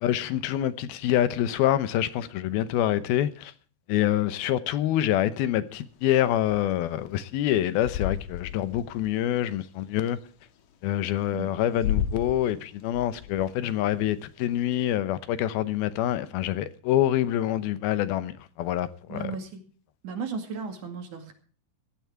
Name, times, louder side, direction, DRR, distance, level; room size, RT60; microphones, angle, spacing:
voice 1, 0.0-3.5 3.9-10.2 10.8-19.4, left 12 dB, 85° left, 2.8 m, -26 dB
sound 1, 5.9-10.2 10.7-10.8 11.2-14.6, left 9 dB, 65° left, 2.7 m, -33 dB
voice 2, 19.1-19.6 20.0-21.3, right 5 dB, 60° right, 3.6 m, -35 dB
16.0 x 12.0 x 4.6 m
omnidirectional pair, 4.3 m